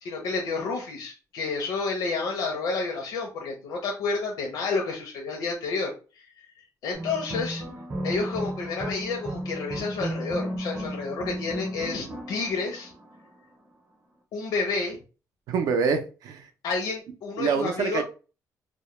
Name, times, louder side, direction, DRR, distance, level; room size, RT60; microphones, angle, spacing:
voice 1, 0.0-5.9 6.8-7.6 8.0-12.9 14.3-15.0 16.6-18.0, left 4 dB, 80° left, 0.5 m, -30 dB
sound 1, 6.9-13.5, right 1 dB, 30° right, 0.7 m, -34 dB
voice 2, 15.5-16.5 17.4-18.0, right 5 dB, 75° right, 0.4 m, -26 dB
2.1 x 2.1 x 2.9 m
cardioid pair, 160°, 6 cm